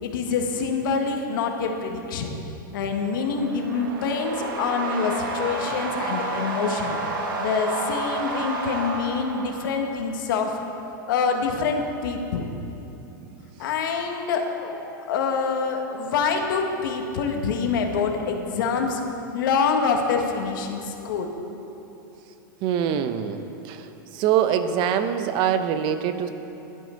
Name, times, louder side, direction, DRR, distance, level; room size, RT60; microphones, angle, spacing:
voice 1, 0.0-2.3 2.7-7.0 7.4-10.6 11.1-12.5 13.6-19.0 19.3-21.3, left 5 dB, 70° left, 3 dB, 1.7 m, -26 dB
sound 1, 3.0-10.1, right 2 dB, 75° right, 1.7 m, -30 dB
voice 2, 22.6-23.9 24.1-26.3, right 9 dB, 45° right, 9 dB, 0.9 m, -24 dB
16.0 x 11.5 x 3.9 m, 2.9 s
hypercardioid pair, 115°, 11 cm